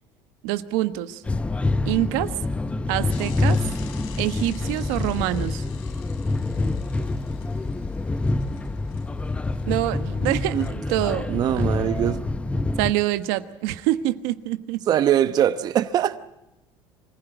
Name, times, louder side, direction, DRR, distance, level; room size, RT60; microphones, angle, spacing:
voice 1, 0.4-1.2 1.8-2.3 2.9-3.6 4.2-5.6 9.7-11.3 12.8-14.9, right 15 dB, 90° right, 1.2 m, -25 dB
sound 1, 1.2-12.9, left 2 dB, 10° left, 0.8 m, -26 dB
Bicycle / Mechanisms, 3.1-10.7, left 8 dB, 70° left, 3.7 m, -47 dB
voice 2, 11.3-12.2 14.9-16.2, right 11 dB, 40° right, 0.9 m, -22 dB
25.0 x 15.5 x 9.0 m
cardioid pair, 145°, 10 cm